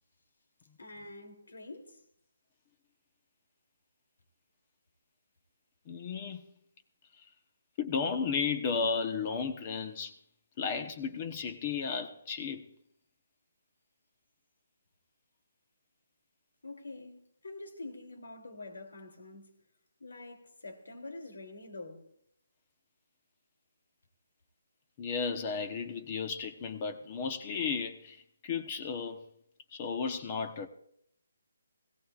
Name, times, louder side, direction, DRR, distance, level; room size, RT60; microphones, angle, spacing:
voice 1, 0.8-2.0 16.6-19.5 20.0-22.0, left 2 dB, 85° left, 3.1 m, -46 dB
voice 2, 5.9-6.4 7.1-7.2 7.8-10.1 10.6-12.7 25.0-29.2 29.7-30.7, left 5 dB, 25° left, 1.0 m, -34 dB
18.0 x 16.5 x 2.5 m
hypercardioid pair, 165°, 0 cm